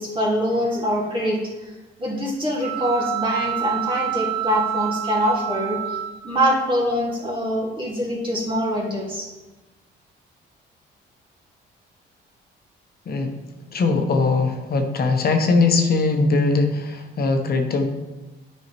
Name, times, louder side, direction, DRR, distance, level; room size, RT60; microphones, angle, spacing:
voice 1, 0.0-1.7 2.0-6.0 6.2-9.3, equal, 25° right, -3 dB, 2.1 m, -24 dB
sound 1, 2.6-6.7, right 13 dB, 75° right, 1.6 m, -28 dB
voice 2, 13.7-17.9, left 3 dB, 50° left, 5 dB, 1.0 m, -20 dB
9.1 x 5.5 x 3.1 m, 1.1 s
cardioid pair, 90°, 20 cm